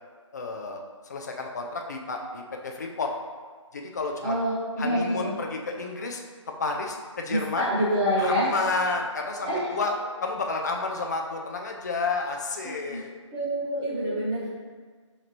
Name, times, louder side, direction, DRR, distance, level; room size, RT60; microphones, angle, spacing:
voice 1, 0.3-3.1 3.7-4.4 4.8-6.2 6.6-7.7 8.2-9.9 10.2-13.1, left 3 dB, 35° left, 2 dB, 0.4 m, -31 dB
voice 2, 4.2-5.4 7.3-8.5 9.4-9.7 12.6-13.0 13.3-14.5, equal, 15° right, -9 dB, 1.0 m, -27 dB
5.6 x 2.9 x 2.8 m, 1.5 s
figure-of-eight pair, 155°, 16 cm